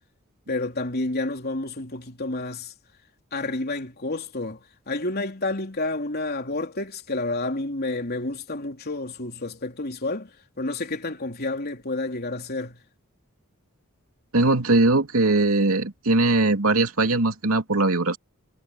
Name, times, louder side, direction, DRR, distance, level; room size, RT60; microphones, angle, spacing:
voice 1, 0.5-2.7 3.3-12.8, left 2 dB, 50° left, 3.6 m, -30 dB
voice 2, 14.3-18.2, right 2 dB, 80° right, 2.9 m, -20 dB
head